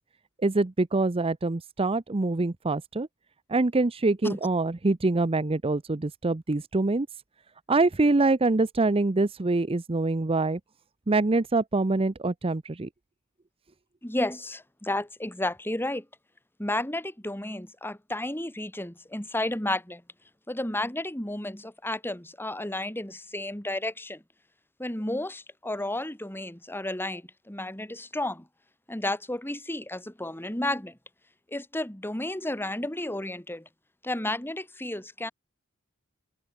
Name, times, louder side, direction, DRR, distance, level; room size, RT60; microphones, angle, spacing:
voice 1, 0.4-3.1 3.5-7.1 7.7-10.6 11.1-12.9, right 2 dB, 25° right, 0.6 m, -25 dB
voice 2, 14.0-16.1 16.6-20.0 20.5-24.2 24.8-28.5 28.9-31.0 31.5-33.7 34.0-35.3, left 1 dB, 10° left, 2.2 m, -32 dB
open air
head